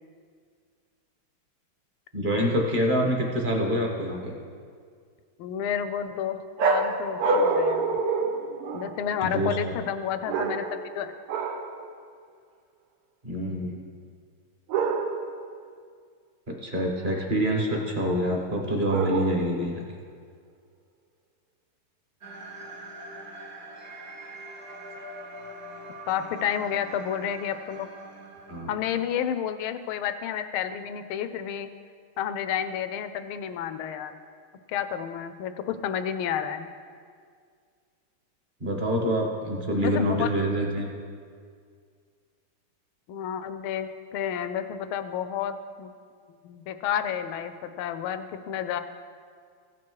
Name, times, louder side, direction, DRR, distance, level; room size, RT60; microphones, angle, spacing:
voice 1, 2.1-4.3 9.2-9.7 13.2-13.7 16.6-19.9 28.5-28.7 38.6-40.9, equal, 30° right, 0 dB, 1.1 m, -26 dB
voice 2, 5.4-8.0 8.7-11.1 26.1-27.9 28.7-31.7 32.2-34.1 34.7-36.7 39.8-40.3 43.1-45.9 46.4-48.8, left 9 dB, 80° left, 10 dB, 1.4 m, -30 dB
sound 1, 6.6-9.1 10.3-10.9 11.3-11.8 14.7-15.4 18.9-19.6, right 4 dB, 90° right, 1.8 m, -26 dB
sound 2, 22.2-29.3, right 2 dB, 50° right, 0.8 m, -43 dB
15.5 x 6.1 x 4.6 m, 2.1 s
omnidirectional pair, 2.4 m